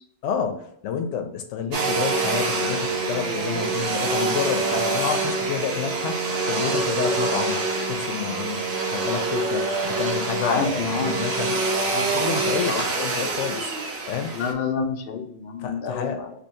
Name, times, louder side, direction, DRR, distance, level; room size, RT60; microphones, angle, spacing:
voice 1, 0.2-7.6 7.9-8.6 8.9-11.6 11.9-13.7 14.1-14.4 15.6-16.2, left 7 dB, 90° left, 6 dB, 0.9 m, -29 dB
Domestic sounds home sounds, 1.7-14.5, right 3 dB, 65° right, 0.9 m, -25 dB
voice 2, 10.4-11.1 11.4-11.6 11.9-12.1 12.7-12.9 14.3-16.3, left 5 dB, 60° left, 3 dB, 0.7 m, -28 dB
2.9 x 2.7 x 4.2 m, 0.68 s
omnidirectional pair, 1.2 m